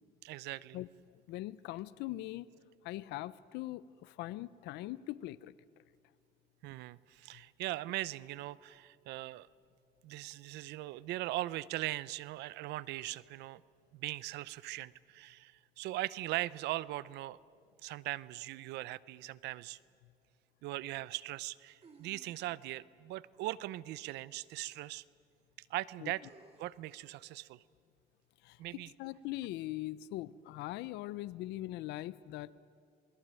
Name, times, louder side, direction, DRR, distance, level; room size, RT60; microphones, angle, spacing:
voice 1, 0.2-0.8 6.6-9.5 10.0-13.6 13.9-17.4 17.8-19.8 20.6-25.0 25.7-26.3 26.6-27.6 28.6-28.9, right 17 dB, 85° right, 20 dB, 0.7 m, -40 dB
voice 2, 1.3-2.5 2.8-5.6 26.0-26.1 28.4-28.6 29.0-32.6, left 16 dB, 90° left, 17 dB, 0.6 m, -41 dB
sound 1, 21.8-22.8 24.6-24.7 26.2-26.9, right 4 dB, 35° right, 3.6 m, -60 dB
28.0 x 21.0 x 9.0 m, 2.3 s
cardioid pair, 110°, 17 cm